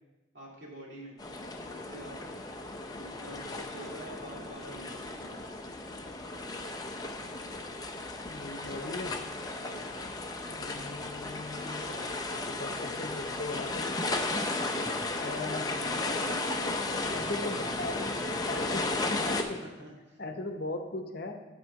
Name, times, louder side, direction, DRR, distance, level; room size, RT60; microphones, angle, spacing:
voice 1, 0.3-1.2 1.6-2.2 3.0-5.4 9.6-9.9 14.0-14.4 16.0-17.3 19.6-20.2, right 1 dB, 60° right, -3 dB, 2.4 m, -47 dB
sound 1, 1.2-19.4, left 2 dB, 20° left, 0.5 m, -35 dB
voice 2, 8.2-9.2 10.4-14.0 15.2-15.9 17.1-18.0 18.5-19.6 20.2-21.5, left 2 dB, 50° left, 5 dB, 0.8 m, -39 dB
8.6 x 4.4 x 6.5 m, 1.1 s
head